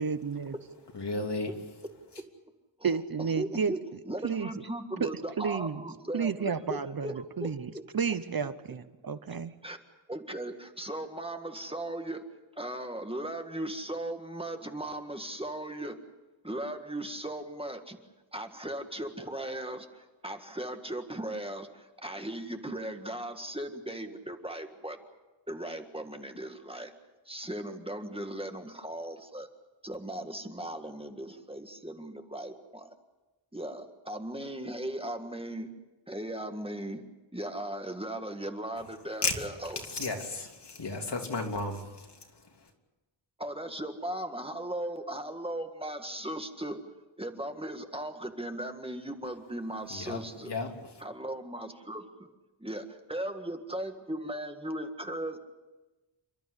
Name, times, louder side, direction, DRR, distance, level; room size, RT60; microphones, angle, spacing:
voice 1, 0.0-0.5 2.8-3.7 4.2-4.5 5.0-5.1 5.4-5.8 6.1-9.5, right 6 dB, 50° right, 0.9 m, -31 dB
voice 2, 0.9-1.5 39.2-39.3 39.9-42.2 49.9-50.9, left 3 dB, 60° left, 3.2 m, -34 dB
voice 3, 2.8-3.8 4.0-6.8 7.0-7.8 9.6-9.8 10.1-12.2 12.6-16.0 16.4-18.0 18.3-25.0 25.5-26.9 27.2-29.5 29.8-32.9 33.5-35.7 36.1-37.0 37.3-39.9 43.4-46.8 47.2-50.5 51.0-52.3 52.6-55.4, right 1 dB, 10° right, 1.7 m, -37 dB
29.0 x 12.5 x 9.8 m
wide cardioid pair, 120°, 46 cm